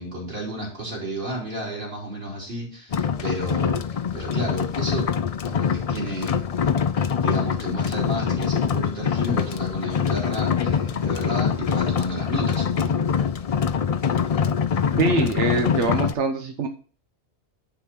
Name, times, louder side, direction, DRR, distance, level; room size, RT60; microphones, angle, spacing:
voice 1, 0.0-5.1 5.5-6.4 6.9-13.0, right 1 dB, 50° right, -3 dB, 3.2 m, -32 dB
sound 1, 2.9-16.1, left 7 dB, 55° left, 0.4 m, -24 dB
voice 2, 15.0-16.7, right 3 dB, 90° right, 5 dB, 1.2 m, -23 dB
10.0 x 3.8 x 5.8 m, 0.40 s
omnidirectional pair, 1.2 m